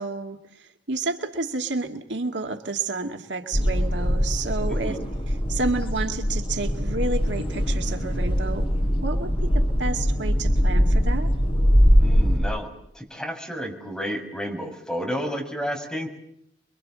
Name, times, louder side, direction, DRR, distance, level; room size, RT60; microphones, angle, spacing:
voice 1, 0.0-5.0 5.3-8.7 9.0-11.3, right 3 dB, 75° right, 4 dB, 2.3 m, -30 dB
sound 1, 3.5-12.4, equal, 35° left, 6.6 m, -22 dB
voice 2, 4.7-5.0 12.0-12.7 12.9-16.1, equal, 5° left, 1 dB, 6.4 m, -31 dB
28.0 x 24.0 x 7.7 m, 0.72 s
head